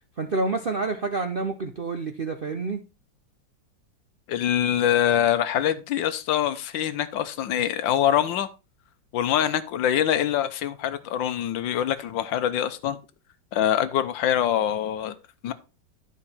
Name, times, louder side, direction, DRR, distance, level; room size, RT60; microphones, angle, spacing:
voice 1, 0.2-2.8, right 3 dB, 55° right, 0.6 m, -28 dB
voice 2, 4.3-8.5 9.1-13.0 13.5-15.1 15.4-15.5, left 10 dB, 85° left, 1.5 m, -24 dB
11.5 x 4.9 x 4.2 m
omnidirectional pair, 2.0 m